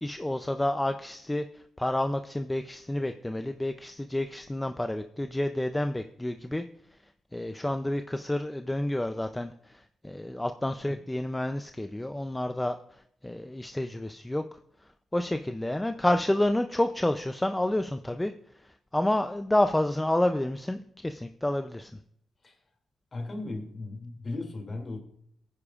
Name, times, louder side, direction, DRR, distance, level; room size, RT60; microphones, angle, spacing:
voice 1, 0.0-6.6 7.3-14.6 15.1-22.0, left 1 dB, 10° left, 8 dB, 0.4 m, -29 dB
voice 2, 23.1-25.0, left 2 dB, 35° left, 4 dB, 2.6 m, -36 dB
18.5 x 9.8 x 2.4 m, 0.69 s
cardioid pair, 105°, 0 cm